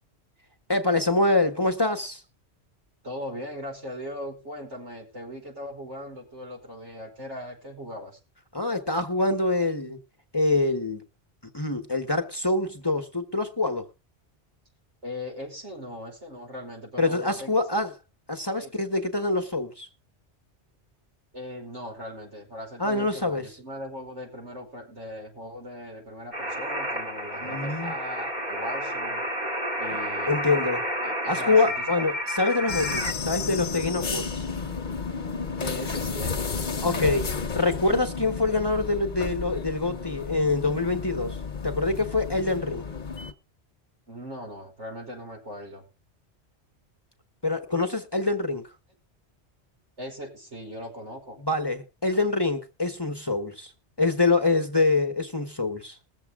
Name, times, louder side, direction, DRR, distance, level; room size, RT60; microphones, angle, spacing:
voice 1, 0.7-2.2 8.5-10.0 10.3-11.0 11.5-13.9 17.0-17.9 18.3-19.9 22.8-23.5 27.4-27.9 30.3-30.8 31.3-34.4 36.8-37.3 37.5-41.4 41.6-42.8 47.4-48.6 51.4-53.7 54.0-56.0, left 3 dB, 20° left, 1.1 m, -25 dB
voice 2, 3.0-8.2 15.0-17.6 18.6-18.7 21.3-29.2 29.8-30.6 31.0-32.1 35.6-37.7 44.1-45.8 50.0-51.4, left 1 dB, 85° right, 5.6 m, -39 dB
sound 1, 26.3-33.1, equal, 40° right, 2.3 m, -30 dB
sound 2, 32.7-43.3, left 5 dB, 45° left, 1.2 m, -32 dB
21.5 x 7.5 x 3.6 m
omnidirectional pair, 1.2 m